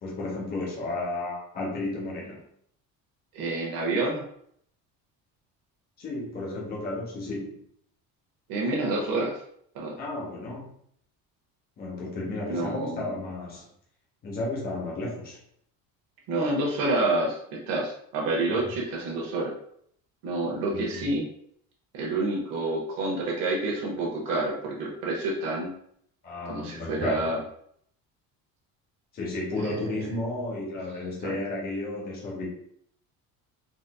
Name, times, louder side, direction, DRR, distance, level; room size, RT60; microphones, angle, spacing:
voice 1, 0.0-2.4 6.0-7.6 10.0-10.7 11.8-13.7 14.2-15.4 18.5-18.7 20.7-21.1 26.2-27.3 29.1-32.5, left 2 dB, 25° left, -3 dB, 0.8 m, -33 dB
voice 2, 3.3-4.2 8.5-9.4 9.7-10.0 12.5-13.2 16.3-19.5 20.2-21.2 21.9-25.7 26.4-27.4 29.6-30.1 31.2-31.3, right 2 dB, 75° right, -2 dB, 0.9 m, -28 dB
3.9 x 2.5 x 2.3 m, 0.67 s
cardioid pair, 170°, 34 cm